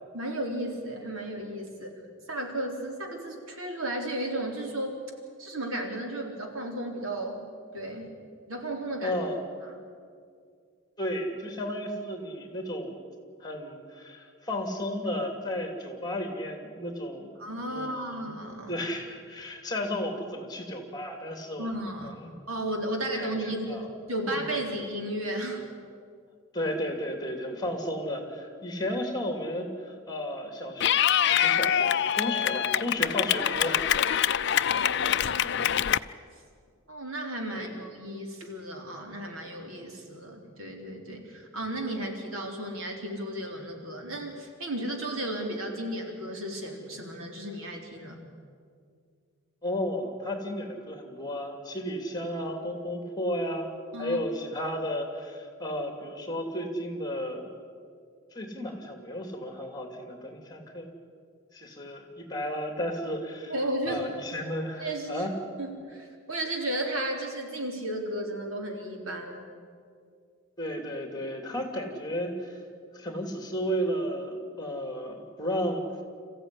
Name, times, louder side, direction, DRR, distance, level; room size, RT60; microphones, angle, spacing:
voice 1, 0.1-2.0 2.3-5.0 5.4-8.2 8.5-9.2 9.6-9.8 17.4-18.9 21.6-22.2 22.5-25.6 34.7-35.9 36.9-48.2 53.9-54.2 63.5-64.1 64.8-65.3 65.6-69.4, right 1 dB, 80° right, 2 dB, 4.0 m, -34 dB
voice 2, 9.0-9.4 11.0-12.9 13.4-17.3 17.7-18.3 18.7-21.7 22.0-22.3 23.2-23.3 23.7-23.9 24.3-24.4 26.5-30.9 31.3-33.9 34.3-34.6 37.5-37.7 49.6-57.5 58.3-60.9 61.5-63.5 63.9-65.3 70.6-72.6 72.9-75.8, equal, 20° left, 5 dB, 2.8 m, -33 dB
Clapping / Cheering, 30.8-36.0, left 10 dB, 55° left, 0.5 m, -25 dB
27.0 x 15.0 x 10.0 m, 2.2 s
head